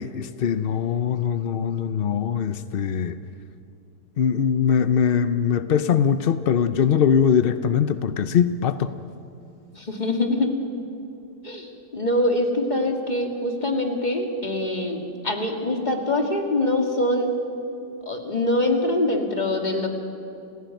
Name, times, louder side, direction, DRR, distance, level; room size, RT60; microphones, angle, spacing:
voice 1, 0.0-3.2 4.2-8.9, left 8 dB, 70° left, 11 dB, 0.5 m, -22 dB
voice 2, 9.7-10.5 11.4-17.3 18.1-19.9, left 1 dB, 25° left, 3 dB, 2.4 m, -24 dB
29.5 x 16.0 x 9.2 m, 2.6 s
omnidirectional pair, 1.9 m